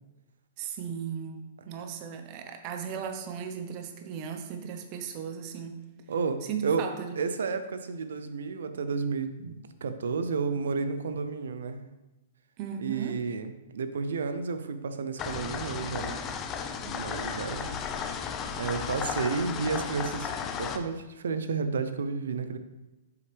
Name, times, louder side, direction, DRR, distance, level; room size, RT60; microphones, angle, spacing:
voice 1, 0.6-5.8 6.4-7.2 12.6-13.2, right 7 dB, 40° right, 6 dB, 0.9 m, -36 dB
voice 2, 6.1-6.8 7.2-11.8 12.8-16.2 16.8-17.8 18.5-20.3 20.6-22.6, right 5 dB, 85° right, 10 dB, 0.7 m, -31 dB
sound 1, 15.2-20.8, left 6 dB, 25° left, 0.6 m, -34 dB
7.8 x 5.6 x 3.5 m, 1.1 s
hypercardioid pair, 140°, 0 cm